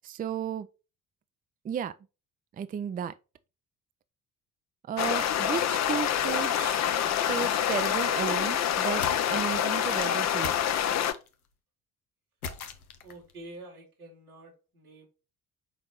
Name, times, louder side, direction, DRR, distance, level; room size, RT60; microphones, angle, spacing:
voice 1, 0.0-0.7 1.6-1.9 2.5-3.1 4.9-6.9 7.3-10.6, right 8 dB, 20° right, 0.5 m, -34 dB
sound 1, 5.0-11.1, left 10 dB, 40° left, 0.7 m, -27 dB
sound 2, 8.9-9.7 10.4-11.3 12.4-13.3, left 5 dB, 85° left, 0.7 m, -40 dB
voice 2, 13.0-15.1, right 2 dB, 85° right, 2.1 m, -47 dB
6.1 x 4.3 x 4.7 m
figure-of-eight pair, 50°, 43 cm